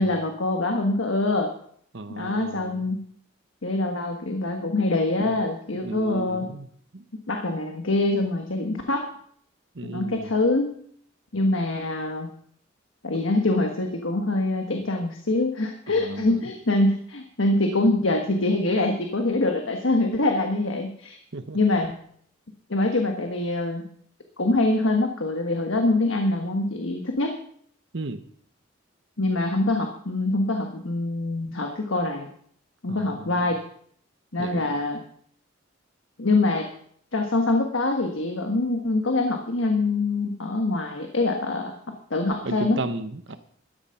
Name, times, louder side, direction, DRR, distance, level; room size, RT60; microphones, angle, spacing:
voice 1, 0.0-1.5 2.1-3.0 3.6-6.5 7.3-9.1 9.8-10.7 11.3-12.3 13.0-21.2 21.5-21.9 22.7-23.8 24.4-27.4 29.2-32.3 32.8-33.6 34.3-35.0 36.2-36.7 37.1-41.8 42.1-42.8, left 2 dB, 75° left, 4 dB, 1.4 m, -24 dB
voice 2, 1.9-2.8 5.2-5.3 5.7-6.7 6.9-7.0 9.7-10.3 16.0-16.5 21.3-21.6 27.9-28.2 32.9-33.5 34.4-34.7 42.4-43.4, right 2 dB, 60° right, 10 dB, 0.9 m, -34 dB
13.0 x 10.5 x 5.7 m, 0.63 s
head